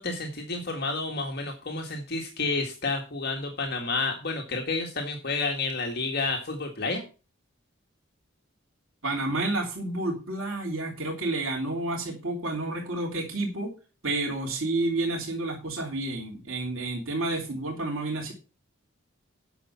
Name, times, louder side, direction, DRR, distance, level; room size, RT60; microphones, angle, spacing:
voice 1, 0.0-7.0, left 3 dB, 50° left, 1 dB, 1.8 m, -30 dB
voice 2, 9.0-13.7 14.0-18.3, right 2 dB, 90° right, -1 dB, 3.2 m, -30 dB
10.0 x 7.0 x 5.8 m, 0.33 s
head